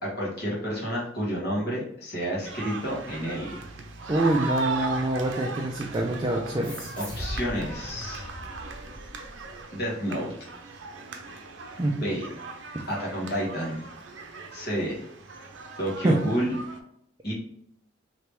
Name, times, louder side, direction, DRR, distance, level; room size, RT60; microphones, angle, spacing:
voice 1, 0.0-3.6 7.0-8.3 9.7-10.3 11.9-12.2 12.9-13.9 14.5-15.0 15.8-16.6 17.2-17.3, equal, 50° left, -4 dB, 1.3 m, -30 dB
sound 1, 2.4-16.8, right 3 dB, 75° right, 0.6 m, -38 dB
voice 2, 4.1-6.9 11.8-12.0 16.0-16.2, right 1 dB, 20° right, -1 dB, 0.4 m, -25 dB
sound 2, 6.6-9.7, equal, 10° left, 1.0 m, -39 dB
3.3 x 2.9 x 3.0 m, 0.71 s
head